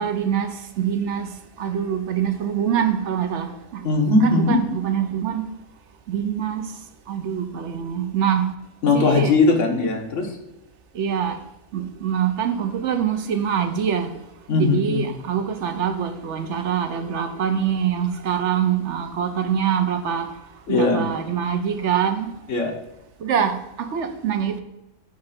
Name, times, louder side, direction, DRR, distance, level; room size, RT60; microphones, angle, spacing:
voice 1, 0.0-1.3 1.6-3.8 4.2-5.4 6.1-6.6 7.1-8.5 8.9-9.3 10.9-11.4 11.7-14.1 14.6-20.3 20.7-22.3 23.2-24.6, right 8 dB, 70° right, 8 dB, 1.0 m, -24 dB
voice 2, 3.8-4.6 8.8-10.4 14.5-15.1 20.7-21.1 22.5-22.7, left 3 dB, 70° left, 2 dB, 1.6 m, -19 dB
9.6 x 3.3 x 5.8 m, 0.94 s
omnidirectional pair, 1.3 m